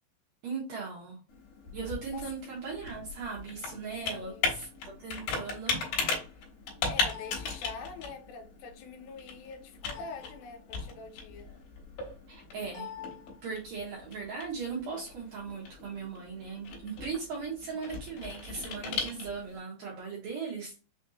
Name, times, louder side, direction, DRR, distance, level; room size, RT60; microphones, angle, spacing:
voice 1, 0.4-1.2 1.7-5.8 12.3-12.9 13.4-20.8, right 5 dB, 70° right, -3 dB, 2.2 m, -38 dB
Computer keyboard, 1.3-19.6, left 4 dB, 65° left, 2.9 m, -37 dB
voice 2, 4.0-4.6 6.8-11.5, left 4 dB, 85° left, 2 dB, 2.9 m, -45 dB
6.2 x 2.5 x 2.7 m, 0.34 s
omnidirectional pair, 4.9 m